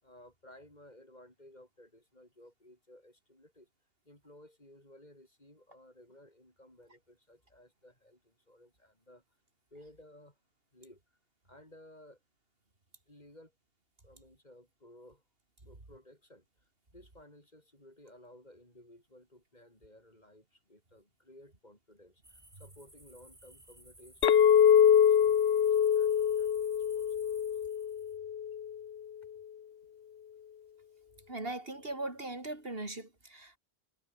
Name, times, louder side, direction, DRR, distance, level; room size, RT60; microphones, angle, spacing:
voice 1, 0.0-3.7 4.0-9.2 9.7-10.4 10.7-11.0 11.4-12.2 13.1-13.5 14.0-15.2 15.6-16.4 16.9-27.1, left 1 dB, 45° left, 6.6 m, -57 dB
sound 1, 22.2-28.2, right 1 dB, 30° right, 4.2 m, -58 dB
Chink clink, 24.2-28.7, left 8 dB, 90° left, 1.1 m, -24 dB
voice 2, 31.3-33.6, right 2 dB, 70° right, 4.2 m, -39 dB
omnidirectional pair, 1.0 m